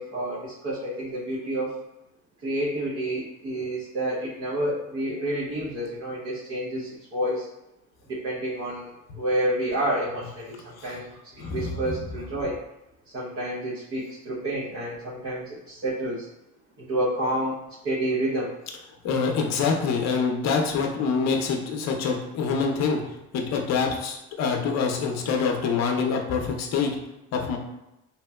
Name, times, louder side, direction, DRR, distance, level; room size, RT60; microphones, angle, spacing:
voice 1, 0.0-1.7 2.4-7.5 8.1-12.6 13.1-16.3 16.8-17.6 17.8-18.5, right 1 dB, 50° right, -7 dB, 0.8 m, -29 dB
voice 2, 11.4-11.8 19.0-23.0 23.3-26.9 27.3-27.6, left 5 dB, 60° left, 2 dB, 0.6 m, -25 dB
2.9 x 2.7 x 2.2 m, 0.91 s
cardioid pair, 110°, 30 cm